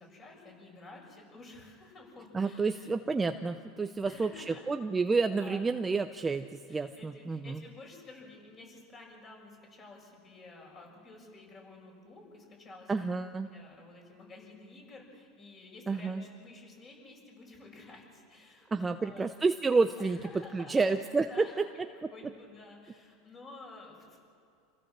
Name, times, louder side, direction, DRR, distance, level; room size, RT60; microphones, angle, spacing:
voice 1, 0.0-2.9 3.9-4.7 5.4-5.6 6.7-13.1 13.5-19.3 20.0-21.7 22.1-24.2, left 2 dB, 25° left, -1 dB, 7.2 m, -51 dB
voice 2, 2.3-7.6 12.9-13.5 15.9-16.2 18.7-20.2 20.5-21.4 22.0-22.1, right 4 dB, 15° right, 8 dB, 0.6 m, -29 dB
28.0 x 16.0 x 7.5 m, 2.4 s
supercardioid pair, 135°, 0 cm